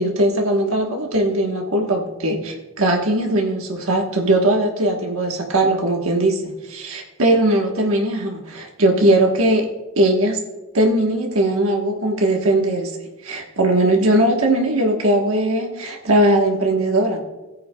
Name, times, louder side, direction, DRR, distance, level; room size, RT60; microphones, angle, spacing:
voice 1, 0.0-9.7 10.0-10.4 10.7-13.0 13.2-17.2, right 1 dB, 80° right, 1 dB, 1.3 m, -19 dB
16.0 x 9.4 x 2.3 m, 1.1 s
head